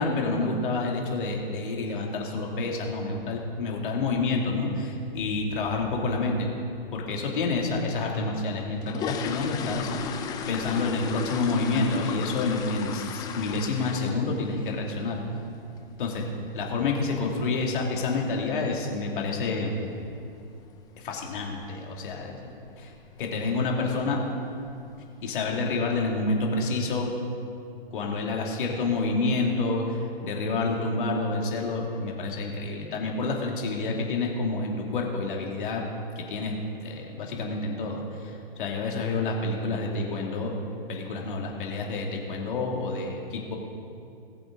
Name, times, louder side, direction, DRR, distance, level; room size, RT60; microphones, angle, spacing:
voice 1, 0.0-6.5 6.9-15.2 16.0-16.2 16.5-19.8 21.0-22.5 22.8-22.9 23.2-24.2 25.2-27.1 27.9-30.0 30.2-35.8 36.2-36.5 36.8-40.5 40.9-43.6, left 3 dB, 60° left, 0 dB, 2.6 m, -28 dB
sound 1, 8.5-14.4 14.7-15.0 15.3-15.4 15.8-15.9 16.3-16.5 16.8-16.9 17.5-17.6 17.8-18.0 18.5-18.8 19.1-19.2 19.6-19.8 20.1-20.2 20.6-20.7 21.3-21.7 22.0-22.3 22.7-22.8 23.2-23.3 24.0-24.2 24.6-25.1 25.5-25.6, left 6 dB, 15° left, 0.5 m, -35 dB
19.5 x 7.9 x 3.9 m, 2.5 s
hypercardioid pair, 130°, 30 cm